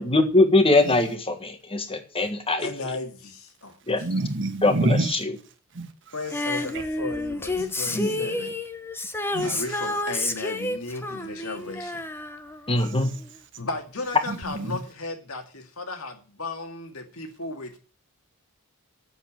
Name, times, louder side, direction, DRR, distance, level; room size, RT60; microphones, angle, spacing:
voice 1, 0.0-2.7 3.9-4.0 4.6-5.3 7.9-8.2 12.7-13.1, left 2 dB, 25° left, 1.5 m, -22 dB
voice 2, 2.6-4.1 6.1-8.5 9.4-12.0 13.6-17.7, left 3 dB, 80° left, 2.2 m, -35 dB
voice 3, 4.0-5.2 5.7-5.9 7.6-8.0 9.3-9.6 12.8-13.0 14.3-14.8, right 2 dB, 60° right, 1.4 m, -27 dB
Female singing, 6.3-13.3 14.4-14.5, left 2 dB, 10° left, 0.9 m, -30 dB
8.3 x 7.3 x 8.7 m
head